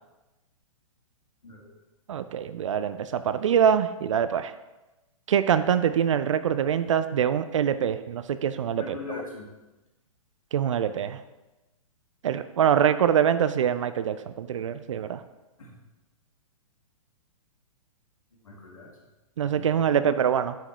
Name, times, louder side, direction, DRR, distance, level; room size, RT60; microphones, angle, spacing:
voice 1, 2.1-4.5 5.3-9.0 10.5-11.2 12.2-15.2 19.4-20.6, right 8 dB, 60° right, 12 dB, 0.5 m, -24 dB
voice 2, 8.7-9.5 15.6-15.7 18.3-18.9 19.4-20.1, left 4 dB, 75° left, -1 dB, 1.7 m, -41 dB
9.9 x 5.7 x 3.0 m, 1.0 s
figure-of-eight pair, 115°, 18 cm